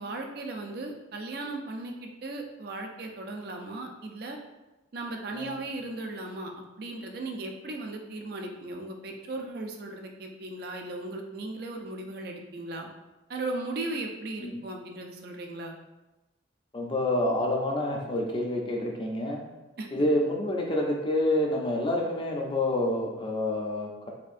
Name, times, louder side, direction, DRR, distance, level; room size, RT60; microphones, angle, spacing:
voice 1, 0.0-4.4 4.9-12.9 13.3-15.7 19.8-19.9, right 2 dB, 55° right, 2 dB, 0.4 m, -37 dB
voice 2, 16.7-19.4 19.9-24.1, left 1 dB, 25° left, 0 dB, 0.4 m, -28 dB
4.3 x 2.5 x 2.5 m, 1.0 s
head